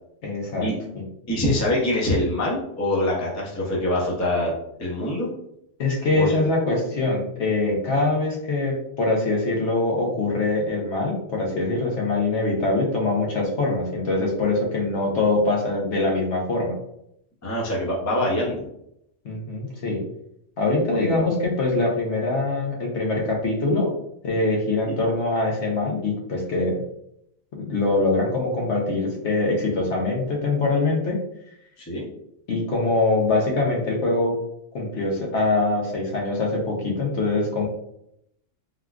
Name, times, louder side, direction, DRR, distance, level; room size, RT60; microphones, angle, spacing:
voice 1, 0.2-0.7 0.9-1.0 5.8-16.7 19.2-20.0 20.6-23.9 24.2-26.8 27.6-31.2 32.5-34.3 34.7-37.7, left 2 dB, 70° left, -1 dB, 1.0 m, -23 dB
voice 2, 1.3-4.5 4.8-5.3 6.1-6.4 17.4-18.6 20.9-21.3 24.8-25.0 31.8-32.1, left 1 dB, 20° left, -3 dB, 0.5 m, -24 dB
3.6 x 2.3 x 2.3 m, 0.76 s
omnidirectional pair, 1.3 m